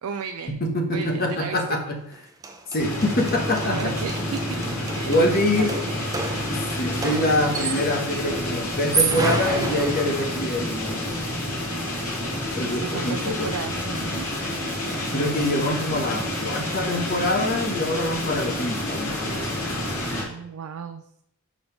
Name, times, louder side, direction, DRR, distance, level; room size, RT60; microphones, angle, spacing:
voice 1, 0.0-0.6 0.9-1.8 3.6-6.6 12.6-14.3 20.2-21.0, right 6 dB, 75° right, 8 dB, 0.4 m, -35 dB
voice 2, 0.6-2.0 2.7-3.9 5.1-5.7 6.5-11.0 12.6-13.5 15.1-19.6, left 1 dB, 45° left, 3 dB, 1.0 m, -25 dB
sound 1, 2.1-2.2 2.4-8.1 8.7-10.5, right 4 dB, 15° right, 0.5 m, -30 dB
sound 2, 2.8-20.2, left 1 dB, 70° left, 2.2 m, -29 dB
5.0 x 3.9 x 5.8 m, 0.76 s
head